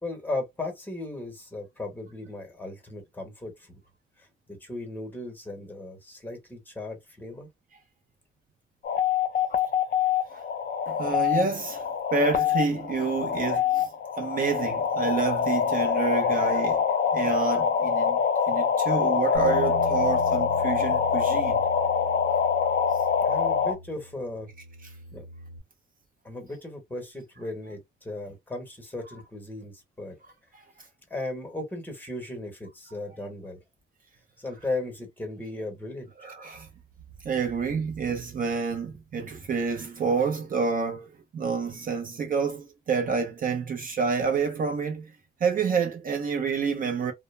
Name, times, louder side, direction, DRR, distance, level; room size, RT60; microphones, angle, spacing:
voice 1, 0.0-3.8 4.2-7.5 23.2-24.5 25.1-25.3 26.2-30.2 31.1-33.6 34.4-36.1, left 2 dB, 10° left, 1.0 m, -36 dB
sound 1, 8.8-23.7, left 7 dB, 50° left, 0.6 m, -25 dB
voice 2, 10.9-13.9 14.2-16.8 17.1-18.2 18.5-21.6 30.5-30.6 36.2-36.7 37.2-45.1 45.4-47.1, right 5 dB, 40° right, 0.5 m, -28 dB
Bass guitar, 19.3-25.6, right 1 dB, 90° right, 0.8 m, -39 dB
2.1 x 2.0 x 3.1 m
cardioid pair, 110°, 21 cm